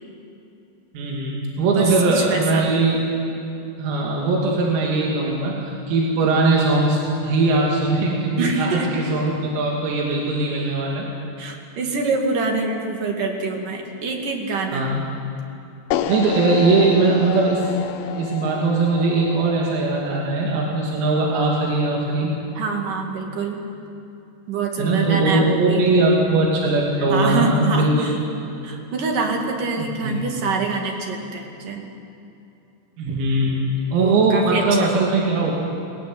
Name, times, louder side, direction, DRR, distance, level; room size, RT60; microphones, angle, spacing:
voice 1, 1.0-3.0 3.8-11.1 14.7-15.0 16.1-17.7 18.1-22.3 24.8-28.1 29.8-30.2 33.0-35.5, right 3 dB, 90° right, -2 dB, 5.4 m, -20 dB
voice 2, 1.7-2.7 8.4-8.9 11.4-14.9 22.6-23.6 24.5-25.8 27.1-28.2 28.6-31.9 34.0-34.9, right 4 dB, 50° right, 2 dB, 3.1 m, -25 dB
sound 1, 15.9-22.1, left 10 dB, 75° left, 3.4 m, -31 dB
22.0 x 20.5 x 9.5 m, 2.8 s
omnidirectional pair, 6.0 m